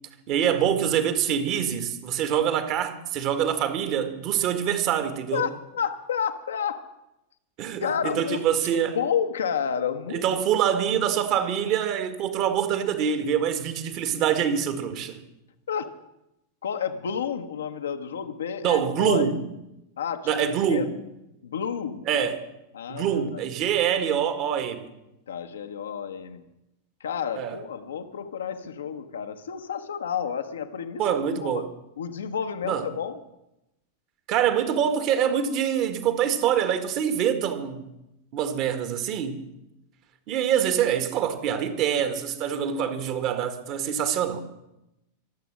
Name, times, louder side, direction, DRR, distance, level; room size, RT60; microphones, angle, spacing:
voice 1, 0.3-5.4 7.6-9.0 10.1-15.2 18.6-19.4 20.3-20.9 22.1-22.4 22.9-24.9 27.3-27.6 31.0-31.7 32.6-32.8 34.3-37.9 38.3-39.4 40.3-44.4, right 9 dB, 40° right, 1.7 m, -25 dB
voice 2, 5.3-6.9 7.8-8.4 8.9-10.2 15.7-15.9 16.6-19.3 20.0-20.3 20.7-20.9 21.4-22.1 22.7-23.4 25.3-26.5 27.0-31.7 32.0-33.2, left 7 dB, 65° left, 1.1 m, -30 dB
23.5 x 8.1 x 6.3 m
figure-of-eight pair, 90°, 0 cm